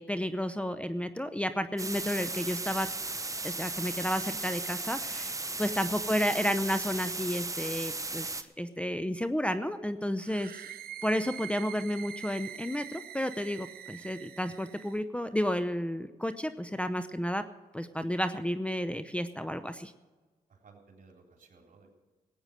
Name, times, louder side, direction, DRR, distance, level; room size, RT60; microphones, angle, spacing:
voice 1, 0.0-2.9 3.4-10.5 11.0-17.4 17.7-19.9, equal, 10° left, 9 dB, 0.7 m, -32 dB
sound 1, 1.8-8.4, right 3 dB, 20° right, 0.9 m, -36 dB
sound 2, 10.2-15.0, right 10 dB, 80° right, 0.7 m, -44 dB
voice 2, 20.5-21.9, right 4 dB, 60° right, 1 dB, 3.7 m, -58 dB
16.5 x 9.0 x 6.5 m, 1.3 s
cardioid pair, 55°, 15 cm